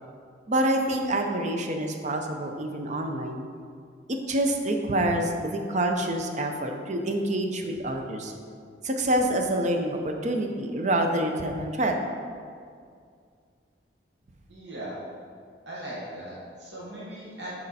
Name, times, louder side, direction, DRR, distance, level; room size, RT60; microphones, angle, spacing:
voice 1, 0.5-3.5 4.1-8.3 8.8-12.0, right 1 dB, 40° right, 3 dB, 0.6 m, -27 dB
voice 2, 14.5-15.0 15.7-17.5, right 1 dB, 75° right, -7 dB, 1.3 m, -38 dB
6.5 x 4.3 x 4.1 m, 2.2 s
head